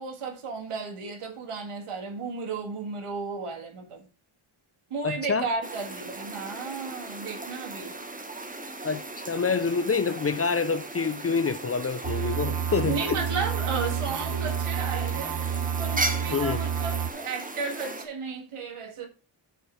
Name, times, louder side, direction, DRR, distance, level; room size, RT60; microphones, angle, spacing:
voice 1, 0.0-4.1 4.9-8.0 12.9-15.3 15.8-19.1, right 4 dB, 90° right, 1.9 m, -34 dB
voice 2, 5.0-5.5 8.8-13.2 16.3-16.6, left 5 dB, 30° left, 0.5 m, -27 dB
sound 1, 5.6-18.1, right 2 dB, 15° right, 1.1 m, -37 dB
sound 2, 12.0-17.1, right 8 dB, 50° right, 0.7 m, -29 dB
7.8 x 4.6 x 4.5 m
cardioid pair, 65°, 50 cm